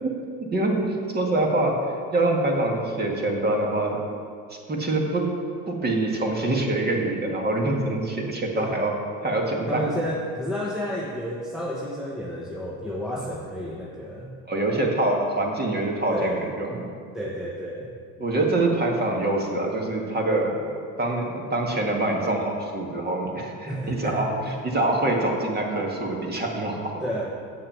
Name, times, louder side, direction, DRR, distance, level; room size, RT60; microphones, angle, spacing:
voice 1, 0.0-1.8 2.1-4.0 4.7-5.3 5.7-8.9 9.2-9.9 14.5-16.8 18.2-20.6 21.0-27.0, right 2 dB, 25° right, 0 dB, 1.8 m, -25 dB
voice 2, 9.7-14.4 16.1-16.5 17.1-17.9 23.7-24.6 27.0-27.3, equal, ahead, -3 dB, 1.0 m, -31 dB
7.4 x 6.5 x 7.4 m, 2.3 s
supercardioid pair, 100°, 42 cm